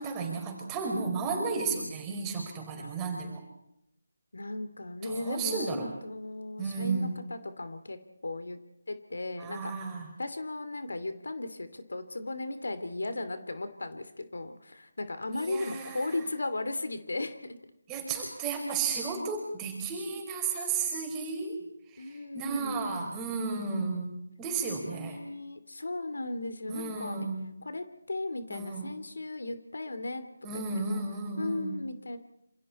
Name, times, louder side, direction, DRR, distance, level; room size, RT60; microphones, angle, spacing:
voice 1, 0.0-3.4 5.2-5.9 6.6-7.2 9.4-10.1 15.3-16.2 17.9-21.6 21.9-25.2 26.7-27.5 28.5-28.9 30.4-31.8, right 4 dB, 15° right, 1 dB, 5.2 m, -33 dB
voice 2, 1.4-1.9 2.7-2.9 4.3-8.6 8.9-9.7 10.2-17.6 22.0-23.2 24.6-27.2 27.6-30.2 30.5-31.0 31.4-32.2, left 2 dB, 80° left, 10 dB, 2.8 m, -36 dB
28.0 x 27.5 x 4.4 m, 0.81 s
figure-of-eight pair, 165°, 0 cm